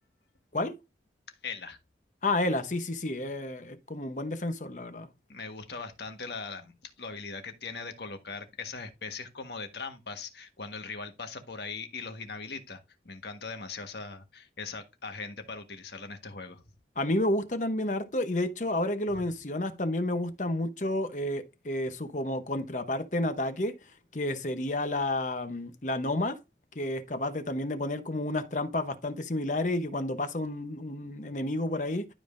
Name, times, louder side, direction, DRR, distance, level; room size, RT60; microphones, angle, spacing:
voice 1, 1.4-1.8 5.3-16.6, left 4 dB, 70° left, 1.4 m, -40 dB
voice 2, 2.2-5.1 17.0-23.8 24.1-26.4 26.7-32.1, left 1 dB, 45° left, 0.9 m, -30 dB
12.0 x 5.2 x 2.6 m
head